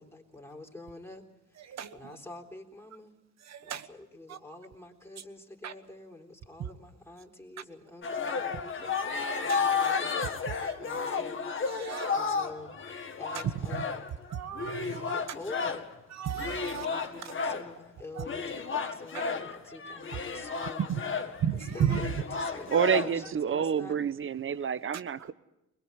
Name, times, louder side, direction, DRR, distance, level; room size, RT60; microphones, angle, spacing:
voice 1, 0.0-3.1 3.6-10.2 10.8-11.5 12.1-14.1 14.9-15.9 16.6-20.9 21.7-24.0, left 2 dB, 10° left, 1 dB, 3.8 m, -47 dB
voice 2, 1.6-2.2 3.4-3.9 4.3-4.4 5.2-5.3 5.6-5.7 6.6-6.7 9.5-9.6 10.5-11.0 11.6-12.4 13.7-13.8 14.3-15.1 16.1-16.9 17.2-17.3 18.1-18.2 19.1-19.4 20.1-20.2 20.8-21.0 21.3-22.2, right 9 dB, 60° right, 12 dB, 1.4 m, -34 dB
sound 1, 8.0-15.9 16.3-17.7 18.2-23.3, left 5 dB, 40° left, 2.1 m, -33 dB
voice 3, 22.7-25.3, right 8 dB, 45° right, 15 dB, 1.0 m, -28 dB
22.0 x 21.0 x 8.1 m, 0.90 s
cardioid pair, 90°, 30 cm